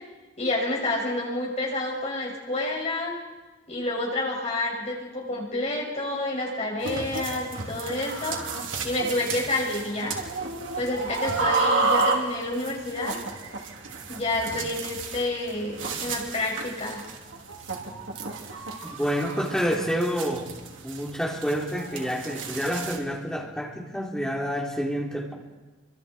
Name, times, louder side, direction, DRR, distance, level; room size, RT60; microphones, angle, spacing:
voice 1, 0.4-3.1 3.7-8.4 8.8-10.2 10.7-13.2 14.1-17.0, left 2 dB, 35° left, -2 dB, 6.7 m, -29 dB
sound 1, 6.8-23.0, right 3 dB, 85° right, 3.1 m, -31 dB
voice 2, 19.0-20.5 20.8-25.3, equal, 5° left, -2 dB, 3.8 m, -28 dB
28.5 x 25.0 x 4.6 m, 1.2 s
head